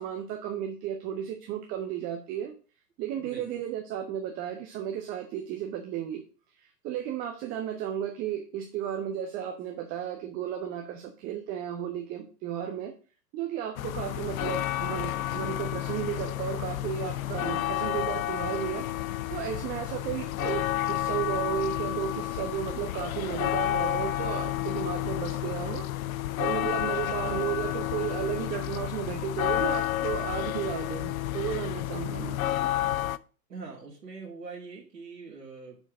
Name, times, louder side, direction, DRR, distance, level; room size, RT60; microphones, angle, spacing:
voice 1, 0.0-2.5 3.0-6.2 6.8-12.9 13.3-18.9 19.3-25.8 26.4-32.6, right 10 dB, 20° right, 4 dB, 0.6 m, -34 dB
sound 1, 13.8-33.2, left 13 dB, 60° left, 0.5 m, -31 dB
voice 2, 33.5-35.8, right 4 dB, 75° right, -4 dB, 2.2 m, -43 dB
6.8 x 4.5 x 6.3 m, 0.37 s
figure-of-eight pair, 115°, 50 cm